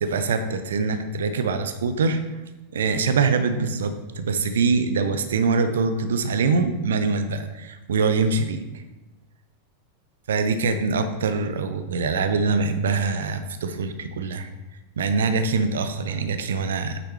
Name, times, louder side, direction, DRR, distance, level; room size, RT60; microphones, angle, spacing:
voice 1, 0.0-2.2 2.7-8.8 10.3-14.5 15.0-17.0, right 4 dB, 65° right, 9 dB, 0.7 m, -24 dB
9.2 x 6.0 x 3.0 m, 1.1 s
figure-of-eight pair, 90°, 0 cm